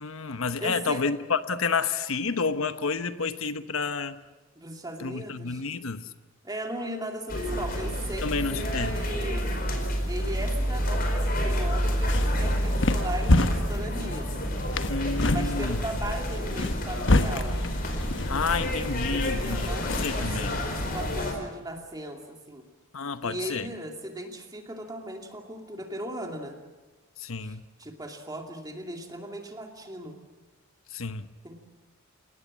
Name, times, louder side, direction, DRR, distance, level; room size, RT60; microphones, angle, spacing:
voice 1, 0.0-4.2 5.0-6.1 8.2-9.0 14.9-15.8 18.3-19.7 20.0-20.6 22.9-23.7 27.2-27.6 30.9-31.3, left 4 dB, 80° left, 10 dB, 1.0 m, -30 dB
voice 2, 0.6-1.0 4.6-5.7 6.4-9.5 10.1-14.3 15.3-17.6 19.1-20.5 20.8-22.2 22.5-22.6 23.2-26.6 27.4-30.2 31.4-31.5, right 1 dB, 20° right, 2 dB, 2.5 m, -37 dB
sound 1, 7.3-21.3, equal, 45° left, 4.8 m, -29 dB
sound 2, 11.9-20.3, left 2 dB, 60° left, 1.3 m, -29 dB
30.0 x 18.5 x 7.5 m, 1.2 s
head